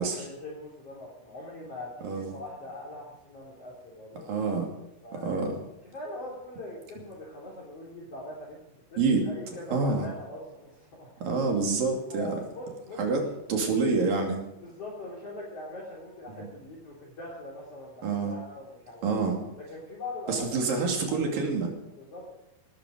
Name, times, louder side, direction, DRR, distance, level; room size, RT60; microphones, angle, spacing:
voice 1, 0.0-4.4 5.0-5.4 5.9-11.3 12.1-13.2 14.6-19.2 19.6-20.7 21.1-21.2 22.0-22.3, left 1 dB, 40° left, -4 dB, 4.1 m, -42 dB
voice 2, 2.0-2.4 4.3-4.7 5.1-5.6 9.0-9.2 9.7-10.1 11.2-12.4 13.0-14.4 16.4-16.5 18.0-18.3 19.0-19.4 20.3-21.7, right 4 dB, 60° right, 1 dB, 4.3 m, -27 dB
18.5 x 13.0 x 5.2 m, 0.88 s
omnidirectional pair, 4.5 m